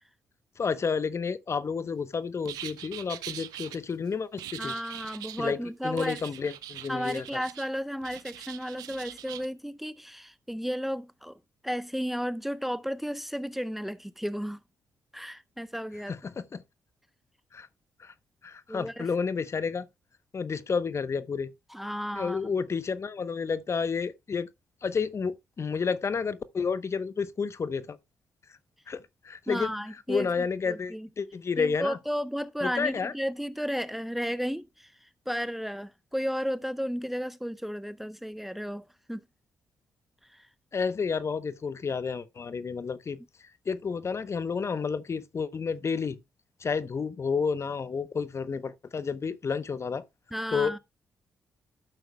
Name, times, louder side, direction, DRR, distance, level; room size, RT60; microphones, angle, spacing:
voice 1, 0.6-4.7 5.4-7.4 16.1-16.6 17.5-17.7 18.0-18.1 18.4-19.9 20.3-21.5 22.1-24.5 24.8-28.0 28.9-29.7 30.1-32.0 32.6-33.1 40.7-43.2 43.7-46.2 46.6-50.0 50.5-50.8, left 5 dB, 45° left, 0.8 m, -30 dB
sound 1, 2.4-3.8 4.4-5.4 6.0-7.7 8.0-9.5, right 13 dB, 80° right, 0.7 m, -42 dB
voice 2, 4.6-6.2 6.9-11.4 11.6-14.6 15.1-16.1 18.7-19.1 21.7-22.5 29.5-30.3 30.7-31.1 31.6-34.9 35.3-39.2 50.3-50.8, equal, 5° right, 0.7 m, -33 dB
12.0 x 7.8 x 2.2 m
hypercardioid pair, 50°, 6 cm